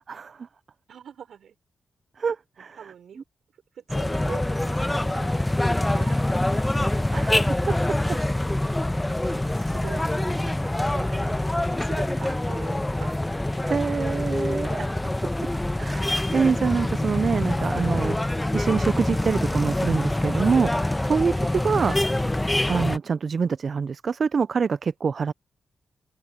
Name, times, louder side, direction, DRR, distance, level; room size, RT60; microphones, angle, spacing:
voice 1, 0.1-0.5 2.2-2.8 7.1-7.6 13.7-15.0 15.8-21.9 22.7-25.3, right 5 dB, 60° right, 0.5 m, -26 dB
voice 2, 0.9-1.6 2.8-3.2 3.7-7.4 7.9-8.9 9.2-13.2 13.5-13.9 14.2-14.9 21.7-21.9, right 8 dB, 75° right, 5.4 m, -44 dB
sound 1, 3.9-23.0, left 1 dB, 15° left, 1.1 m, -25 dB
open air
supercardioid pair, 45°, 0 cm